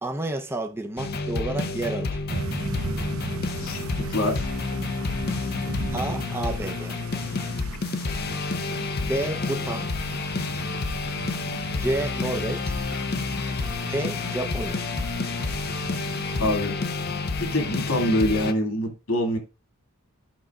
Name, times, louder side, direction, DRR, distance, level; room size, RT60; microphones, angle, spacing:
voice 1, 0.0-2.2 5.9-7.0 7.3-7.4 9.0-9.9 11.8-12.8 13.8-14.9, right 2 dB, 10° right, 0.7 m, -30 dB
sound 1, 1.0-18.5, left 3 dB, 50° left, 0.7 m, -29 dB
sound 2, 2.3-16.5, right 3 dB, 80° right, 0.9 m, -38 dB
voice 2, 3.6-4.5 16.4-16.8 17.4-19.4, left 1 dB, 80° left, 2.4 m, -25 dB
13.5 x 5.8 x 2.4 m
head